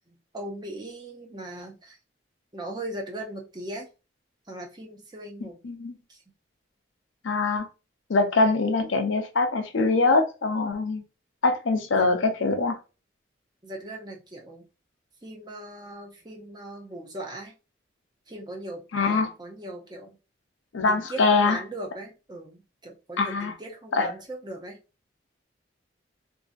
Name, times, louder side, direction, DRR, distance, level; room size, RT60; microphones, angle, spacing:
voice 1, 0.1-2.0 2.5-3.9 4.5-5.6 6.1-6.2 13.6-14.7 15.2-17.5 18.3-20.2 20.9-24.8, right 1 dB, 20° right, 0 dB, 0.6 m, -39 dB
voice 2, 5.6-5.9 7.2-7.7 8.1-11.0 11.4-12.8 18.9-19.3 20.7-21.6 23.2-23.5 24.0-24.1, left 3 dB, 90° left, 5 dB, 0.6 m, -23 dB
2.6 x 2.5 x 2.4 m, 0.30 s
head